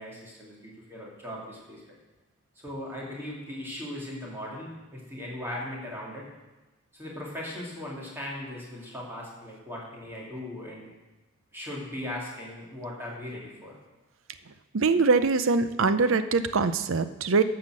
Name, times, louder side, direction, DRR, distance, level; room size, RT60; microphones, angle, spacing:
voice 1, 0.0-2.0 2.5-6.2 6.9-10.9 11.5-13.7, left 1 dB, 10° right, -5 dB, 2.6 m, -38 dB
voice 2, 14.7-17.4, right 4 dB, 60° right, 12 dB, 0.6 m, -23 dB
11.5 x 5.8 x 7.6 m, 1.1 s
head